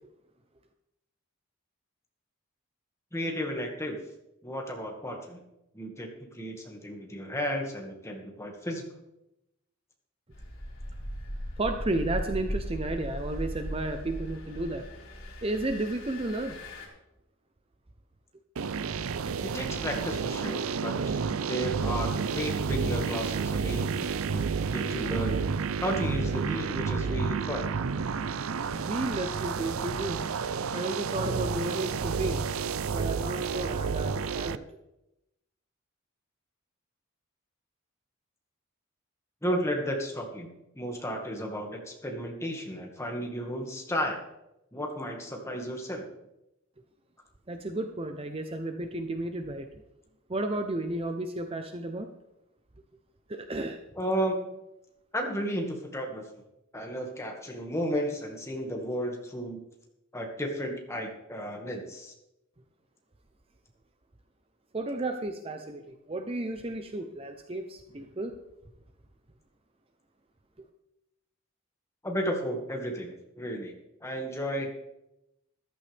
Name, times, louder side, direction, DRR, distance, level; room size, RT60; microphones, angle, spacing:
voice 1, 3.1-4.0 4.4-5.4 5.7-6.1 6.3-8.8 19.4-21.2 21.5-24.4 24.7-25.5 25.8-27.7 39.4-44.2 44.7-46.0 54.0-54.5 55.1-56.2 56.7-59.6 60.1-62.1 72.0-73.7 74.0-74.7, equal, 15° left, 1 dB, 1.9 m, -33 dB
Engine, 10.3-16.9, equal, 75° left, 4.2 m, -37 dB
voice 2, 11.6-14.9 15.4-16.6 28.7-30.2 30.7-32.4 32.9-34.6 47.5-49.7 50.3-52.1 53.3-53.8 64.7-68.4, right 2 dB, 25° right, 6 dB, 0.7 m, -33 dB
sound 1, 18.6-34.6, right 5 dB, 85° right, 0.5 m, -30 dB
14.0 x 12.5 x 3.5 m, 0.88 s
head